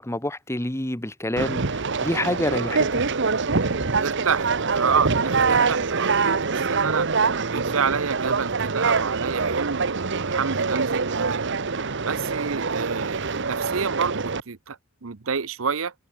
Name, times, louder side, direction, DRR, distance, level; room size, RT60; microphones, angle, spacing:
voice 1, 0.0-1.6 2.0-2.9, left 1 dB, 15° left, 1.7 m, -27 dB
Conversation, 1.4-14.4, right 4 dB, 60° right, 1.2 m, -24 dB
voice 2, 4.0-7.1 7.5-11.6 12.0-15.9, right 6 dB, 80° right, 0.8 m, -28 dB
head